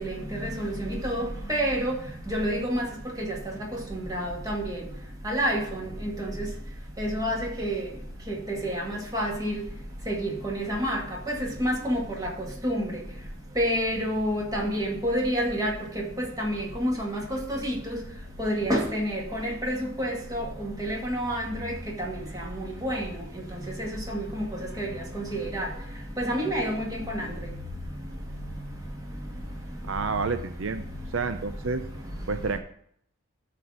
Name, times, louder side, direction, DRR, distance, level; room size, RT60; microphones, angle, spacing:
voice 1, 0.0-1.9 2.3-2.9 3.2-3.4 3.9-4.8 5.2-6.5 7.0-7.8 8.3-9.6 10.1-11.0 11.3-12.3 12.6-12.9 13.6-16.1 16.4-18.0 18.4-23.1 23.5-24.5 24.8-24.9 25.1-25.7 26.2-26.8 27.1-27.3, equal, 15° right, 2.1 m, -29 dB
voice 2, 29.9-30.8 31.1-31.8 32.3-32.6, right 4 dB, 60° right, 0.5 m, -29 dB
13.0 x 4.3 x 6.4 m
head